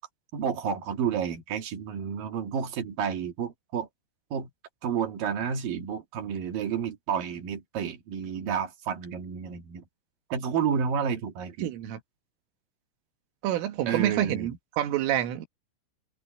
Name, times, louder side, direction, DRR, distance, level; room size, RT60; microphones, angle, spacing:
voice 1, 0.3-3.9 4.3-4.5 4.8-9.8 10.3-11.7 13.9-14.5, right 7 dB, 55° right, 2.9 m, -30 dB
voice 2, 11.6-12.0 13.4-15.5, right 12 dB, 80° right, 4.3 m, -28 dB
omnidirectional pair, 5.7 m